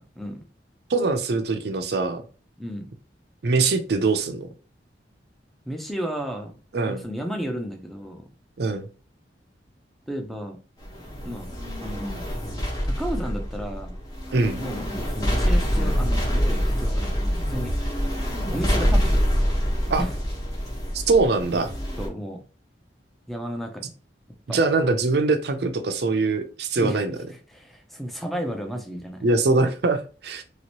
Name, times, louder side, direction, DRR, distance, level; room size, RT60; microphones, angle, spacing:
voice 1, 0.9-2.2 3.4-4.5 6.7-7.0 8.6-8.9 14.3-14.6 19.9-20.0 20.9-21.7 24.5-27.2 29.2-30.4, right 3 dB, 60° right, 8 dB, 0.5 m, -22 dB
voice 2, 5.7-6.5 6.9-8.3 10.1-10.6 11.2-11.5 11.8-12.3 12.8-14.0 14.6-17.7 18.5-19.3 20.0-20.1 22.0-22.4 23.3-23.9 24.5-24.6 26.8-27.0 27.5-29.3, equal, ahead, 3 dB, 0.5 m, -33 dB
sound 1, 10.8-22.1, equal, 20° left, 1.1 m, -25 dB
3.0 x 2.9 x 2.9 m, 0.36 s
head